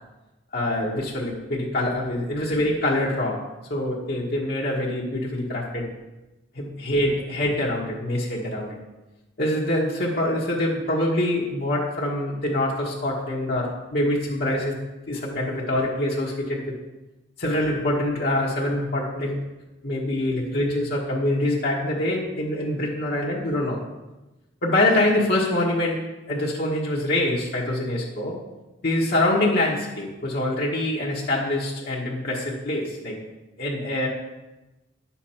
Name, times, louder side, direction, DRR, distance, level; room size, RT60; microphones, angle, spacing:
voice 1, 0.5-5.9 6.5-8.8 9.4-14.8 15.1-16.7 17.4-19.4 19.8-23.8 24.6-28.4 28.8-33.2 33.6-34.1, left 1 dB, 50° left, -4 dB, 1.3 m, -25 dB
10.5 x 7.2 x 4.4 m, 1.1 s
head